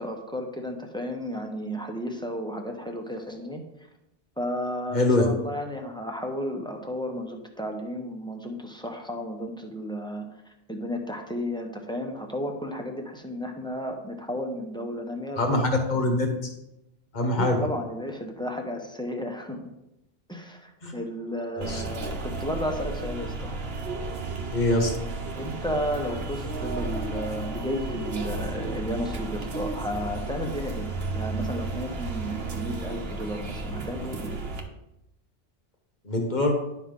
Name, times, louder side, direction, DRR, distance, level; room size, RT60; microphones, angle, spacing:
voice 1, 0.0-3.6 4.4-10.3 10.7-15.7 17.4-19.7 20.3-23.5 25.4-30.9 31.1-34.4, equal, 5° left, 2 dB, 1.0 m, -33 dB
voice 2, 4.9-5.3 15.4-16.3 17.1-17.6 20.8-20.9 21.6-21.8 24.5-24.9 36.0-36.5, left 2 dB, 45° left, 2 dB, 1.5 m, -23 dB
sound 1, 21.6-34.6, right 3 dB, 70° right, 1.2 m, -33 dB
11.0 x 5.7 x 3.8 m, 0.88 s
omnidirectional pair, 1.0 m